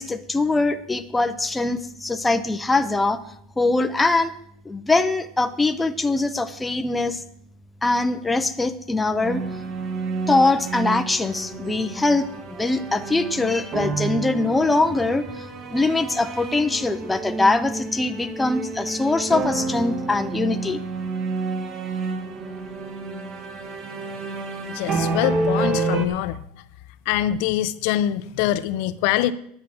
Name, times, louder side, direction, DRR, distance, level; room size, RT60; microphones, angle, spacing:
voice 1, 0.0-3.2 3.6-4.3 4.7-7.2 7.8-9.4 10.3-15.5 15.7-20.8, left 2 dB, 10° left, 7 dB, 0.6 m, -22 dB
sound 1, 9.2-26.1, right 3 dB, 35° right, 1.4 m, -29 dB
voice 2, 24.7-26.4 27.1-29.3, left 13 dB, 60° left, 13 dB, 0.6 m, -24 dB
10.5 x 7.4 x 7.5 m, 0.69 s
supercardioid pair, 160°, 0 cm